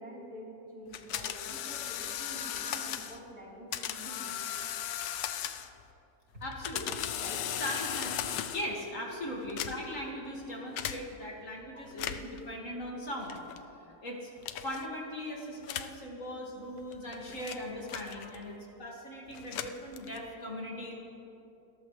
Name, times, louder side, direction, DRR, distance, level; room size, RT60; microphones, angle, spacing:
voice 1, 0.0-4.4 7.2-7.5 11.7-11.8 18.2-18.3, equal, 60° right, -6 dB, 4.6 m, -47 dB
sound 1, 0.9-3.2 3.7-5.8 6.4-8.8 9.4-10.0 10.8-11.0 11.9-12.4 13.3-13.6 14.4-14.8 15.6-16.0 16.8-18.5 19.3-20.3, left 10 dB, 90° left, 1.4 m, -37 dB
voice 2, 6.4-7.1 7.6-8.1 8.4-13.4 14.0-14.3 14.6-20.9, left 1 dB, 50° left, -2 dB, 2.5 m, -39 dB
29.0 x 14.0 x 3.3 m, 2.9 s
omnidirectional pair, 1.8 m